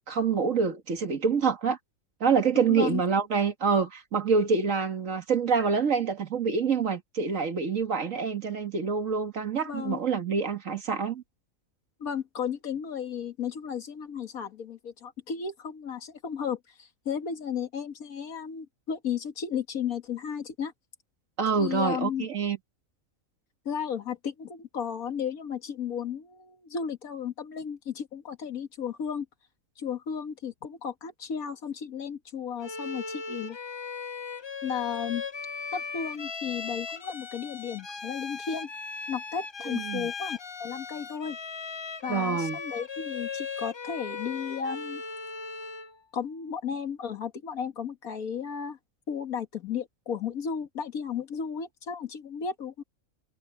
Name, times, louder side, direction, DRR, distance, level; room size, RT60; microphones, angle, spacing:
voice 1, 0.1-1.8 2.2-11.2 21.4-22.6 39.7-40.1 42.1-42.6, right 5 dB, 65° right, 2.0 m, -26 dB
voice 2, 2.7-3.0 9.6-10.0 12.0-20.7 21.6-22.3 23.7-29.3 29.8-33.6 34.6-35.2 35.7-38.7 39.1-41.4 42.0-45.0 46.1-48.8 49.1-52.8, left 7 dB, 90° left, 2.1 m, -34 dB
Bowed string instrument, 32.6-46.0, left 5 dB, 40° left, 0.4 m, -38 dB
omnidirectional pair, 1.4 m